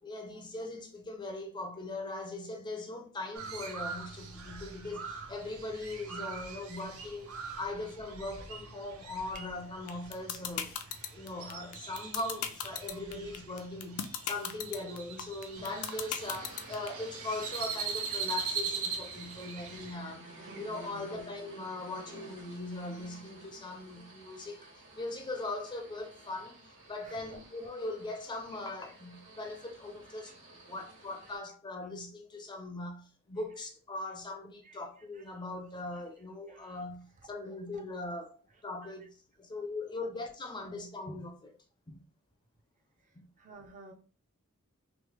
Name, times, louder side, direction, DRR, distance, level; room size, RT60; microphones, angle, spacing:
voice 1, 0.0-10.7 11.1-20.3 20.6-26.6 26.9-30.3 30.7-38.3 38.6-41.6 41.9-42.0, left 2 dB, 20° left, 0.4 m, -40 dB
Crow, 3.3-19.9, right 5 dB, 75° right, 0.6 m, -42 dB
sound 1, 9.9-16.9, left 10 dB, 85° left, 0.4 m, -35 dB
sound 2, 15.5-31.4, right 2 dB, 55° right, 1.2 m, -52 dB
voice 2, 34.6-35.3 36.5-36.8 38.8-38.9 43.4-43.9, right 3 dB, 35° right, 0.5 m, -54 dB
3.1 x 2.0 x 2.9 m
head